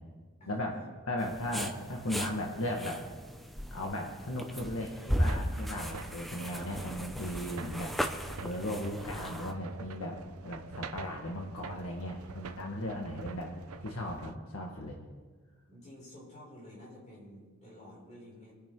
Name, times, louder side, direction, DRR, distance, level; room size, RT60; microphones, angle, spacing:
voice 1, 0.5-0.8 1.1-3.0 3.7-8.0 8.4-13.5 13.8-15.0, left 1 dB, 75° left, 0 dB, 1.7 m, -37 dB
sound 1, 1.2-9.5, equal, ahead, 0.7 m, -37 dB
sound 2, 5.2-14.3, right 4 dB, 85° right, 0.7 m, -46 dB
voice 2, 15.7-18.5, left 1 dB, 30° left, -5 dB, 6.1 m, -51 dB
27.0 x 10.0 x 3.9 m, 1.5 s
head